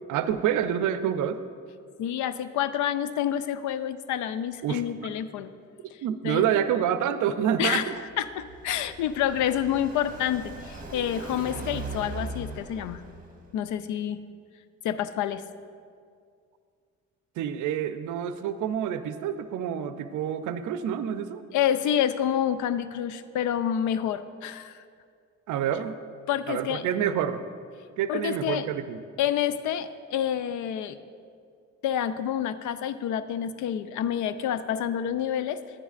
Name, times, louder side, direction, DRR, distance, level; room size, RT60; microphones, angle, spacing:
voice 1, 0.1-1.4 4.6-4.8 6.0-7.9 17.4-21.4 25.5-26.0 26.5-27.4 28.0-29.0, right 9 dB, 80° right, 11 dB, 0.5 m, -27 dB
voice 2, 2.0-5.5 5.9-6.5 7.6-7.9 8.2-13.0 13.5-14.2 14.8-15.4 21.5-24.8 26.3-26.8 28.1-28.7 29.2-31.0 31.8-35.6, left 10 dB, 75° left, 13 dB, 0.5 m, -28 dB
Car passing by, 8.0-13.5, right 3 dB, 25° right, 1.4 m, -39 dB
10.0 x 9.9 x 2.4 m, 2.2 s
cardioid pair, 90°, 30 cm